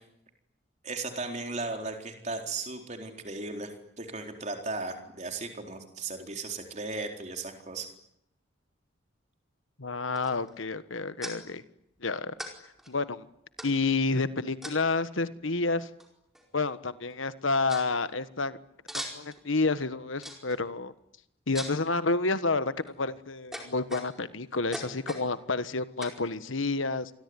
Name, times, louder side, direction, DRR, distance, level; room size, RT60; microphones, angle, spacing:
voice 1, 0.8-7.9, right 3 dB, 35° right, 4 dB, 4.2 m, -36 dB
voice 2, 9.8-11.6 12.0-12.3 12.9-13.3 13.6-15.9 16.5-18.6 18.9-20.9 21.5-22.7 23.0-27.1, left 3 dB, 80° left, 13 dB, 1.4 m, -29 dB
sound 1, 10.2-10.5 11.2-11.4 12.4-12.5 12.8-12.9 13.6-14.0 14.6-15.0 16.0-16.1 16.3-16.7 17.1-17.2 17.7-17.9 18.9-19.4 20.2-20.6 21.5-21.9 22.6-22.9 23.5-24.3 24.7-25.3 26.0-26.2, equal, ahead, 4.7 m, -40 dB
27.5 x 21.5 x 9.9 m, 0.78 s
head